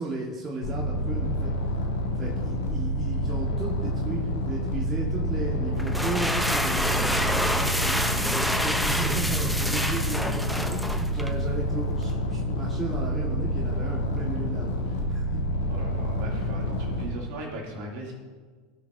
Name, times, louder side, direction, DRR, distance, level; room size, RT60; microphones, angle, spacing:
voice 1, 0.0-1.5 2.2-15.4, right 2 dB, 25° right, -3 dB, 1.6 m, -35 dB
sound 1, 0.6-17.0, equal, 80° left, 1.6 m, -28 dB
sound 2, 5.8-11.4, equal, ahead, 0.7 m, -28 dB
voice 2, 9.8-10.3 15.7-18.1, right 1 dB, 60° right, -2 dB, 2.8 m, -38 dB
16.5 x 6.4 x 2.7 m, 1.5 s
hypercardioid pair, 80°, 0 cm